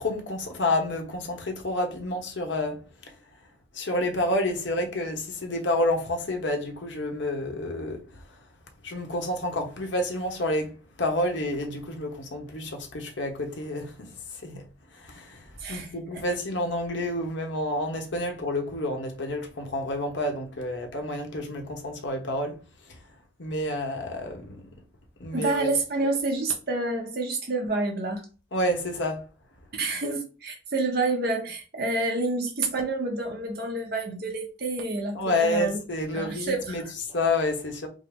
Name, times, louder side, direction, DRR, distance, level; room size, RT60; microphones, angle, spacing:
voice 1, 0.0-2.8 3.7-8.2 8.8-10.7 11.0-13.9 14.3-14.6 14.9-22.6 22.9-23.0 23.4-24.6 25.2-25.7 28.5-29.2 35.1-37.9, left 1 dB, 70° left, 1.0 m, -29 dB
voice 2, 15.6-16.2 25.3-28.2 29.7-35.8 36.1-36.9, right 3 dB, 55° right, 0.8 m, -28 dB
5.3 x 2.1 x 3.5 m
head